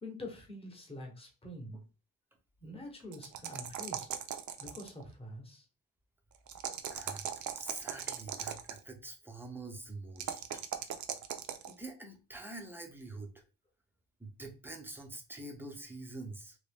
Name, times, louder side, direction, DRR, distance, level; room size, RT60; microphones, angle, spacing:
voice 1, 0.0-1.8 2.6-4.2 4.6-5.6, left 1 dB, 15° left, 1 dB, 0.9 m, -46 dB
sound 1, 3.1-5.0 6.5-8.8 10.2-11.7, right 9 dB, 60° right, 0.5 m, -38 dB
voice 2, 6.9-10.6 11.7-13.4 14.2-16.6, right 2 dB, 5° right, 2 dB, 0.5 m, -46 dB
3.0 x 2.6 x 3.3 m, 0.32 s
wide cardioid pair, 170°, 33 cm